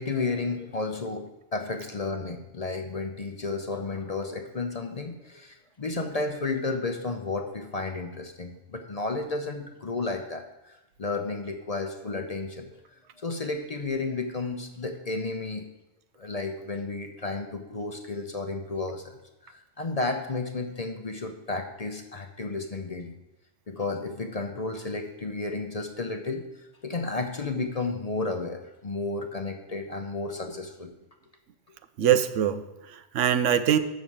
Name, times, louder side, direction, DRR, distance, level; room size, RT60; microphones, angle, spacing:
voice 1, 0.0-12.7 13.2-15.7 16.2-19.2 19.4-23.2 23.7-30.9, left 3 dB, 40° left, 5 dB, 0.7 m, -32 dB
voice 2, 32.0-33.8, right 10 dB, 90° right, 11 dB, 1.0 m, -23 dB
6.8 x 6.2 x 7.3 m, 0.96 s
omnidirectional pair, 1.2 m